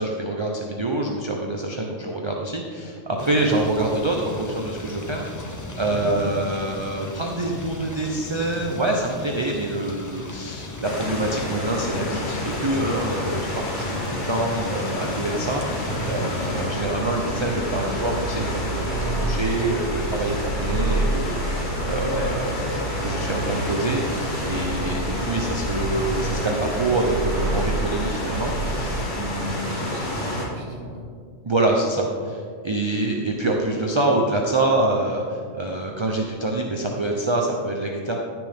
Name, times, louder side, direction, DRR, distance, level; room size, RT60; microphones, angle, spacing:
voice 1, 0.0-13.5 13.8-29.9 31.4-38.2, right 2 dB, 30° right, 0 dB, 0.6 m, -26 dB
sound 1, 3.2-16.6, left 2 dB, 20° left, 0.5 m, -36 dB
sound 2, 10.8-30.4, left 1 dB, 65° left, 2.3 m, -30 dB
sound 3, 15.9-29.1, right 2 dB, 60° right, 1.2 m, -29 dB
voice 2, 29.2-31.0, right 1 dB, 85° right, -3 dB, 2.3 m, -36 dB
14.5 x 6.2 x 3.6 m, 2.1 s
omnidirectional pair, 1.3 m